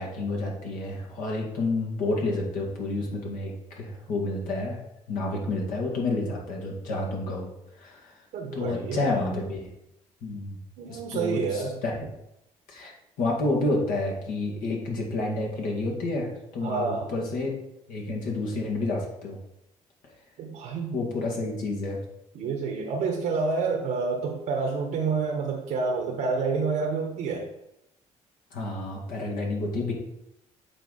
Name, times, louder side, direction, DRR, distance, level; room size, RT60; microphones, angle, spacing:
voice 1, 0.0-4.8 5.1-7.5 7.8-8.1 8.5-9.7 10.2-10.6 10.9-12.0 12.7-17.6 17.9-19.4 20.9-22.0 28.5-29.9, left 2 dB, 85° left, -1 dB, 1.9 m, -29 dB
voice 2, 8.3-9.2 10.8-12.1 16.6-17.1 20.4-21.0 22.3-27.5, right 4 dB, 80° right, 1 dB, 1.1 m, -28 dB
8.1 x 4.1 x 4.1 m, 0.85 s
supercardioid pair, 75°, 14 cm